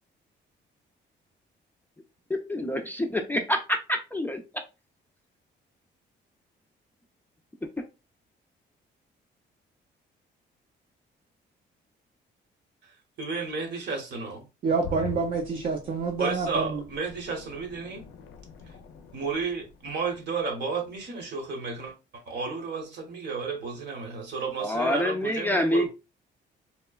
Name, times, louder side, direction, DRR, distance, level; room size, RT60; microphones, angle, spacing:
voice 1, 2.3-4.4 24.6-25.9, left 1 dB, 10° left, 0.3 m, -27 dB
voice 2, 13.2-14.5 16.2-18.1 19.1-25.9, right 4 dB, 65° right, 1.0 m, -32 dB
voice 3, 14.6-16.8, right 4 dB, 45° right, 0.5 m, -27 dB
sound 1, 14.8-20.6 21.0-21.1, left 6 dB, 90° left, 0.5 m, -44 dB
2.9 x 2.1 x 2.3 m
cardioid pair, 110°, 19 cm